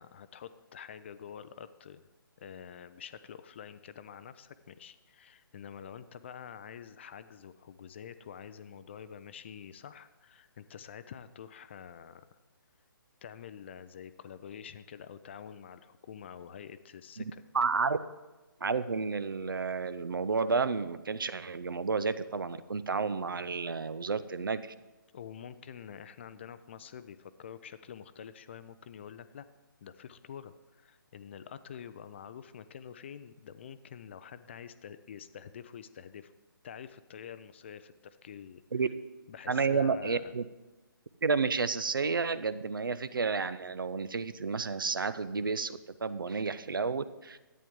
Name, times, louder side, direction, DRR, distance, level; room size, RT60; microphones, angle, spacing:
voice 1, 0.0-2.0 2.4-12.3 13.2-17.4 25.1-29.5 29.8-36.3 36.6-38.6 39.3-40.3, left 8 dB, 30° left, 13 dB, 0.4 m, -47 dB
voice 2, 17.2-18.0 18.6-24.7 38.7-38.9 39.5-40.5 41.2-47.4, right 4 dB, 70° right, 15 dB, 0.5 m, -31 dB
11.0 x 9.1 x 3.6 m, 1.1 s
figure-of-eight pair, 140°, 12 cm